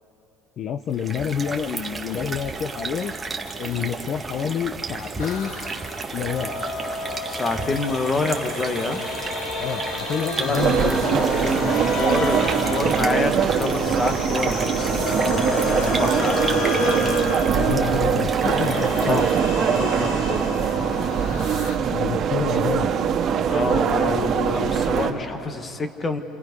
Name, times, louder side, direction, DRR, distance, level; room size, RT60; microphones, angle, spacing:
voice 1, 0.6-3.1 3.6-5.5 6.1-6.5 9.6-11.5 17.5-19.2 20.8-21.0 21.9-22.9, left 8 dB, 45° left, 7 dB, 0.8 m, -28 dB
sound 1, 0.9-19.5, right 4 dB, 15° right, 1.5 m, -33 dB
sound 2, 5.2-21.7, left 2 dB, 85° left, 2.8 m, -31 dB
voice 2, 7.3-9.0 10.4-16.7 18.9-20.6 23.5-26.2, left 3 dB, 25° left, 8 dB, 1.5 m, -28 dB
sound 3, 10.5-25.1, right 7 dB, 45° right, 2.0 m, -22 dB
28.5 x 28.5 x 5.4 m, 2.9 s
cardioid pair, 125°, 0 cm